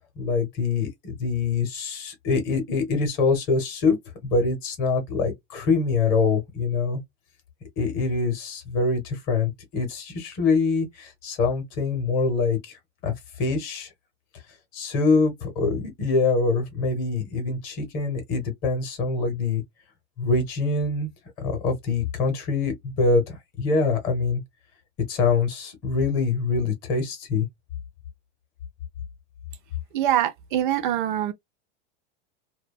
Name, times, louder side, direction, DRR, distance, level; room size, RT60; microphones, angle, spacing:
voice 1, 0.2-4.0 4.2-7.0 7.8-12.7 13.0-13.9 14.7-19.6 20.2-21.1 21.4-24.4 25.1-27.5, left 4 dB, 25° left, 0.9 m, -24 dB
voice 2, 29.9-31.3, right 11 dB, 45° right, 0.5 m, -24 dB
2.6 x 2.2 x 2.2 m
supercardioid pair, 175°, 35 cm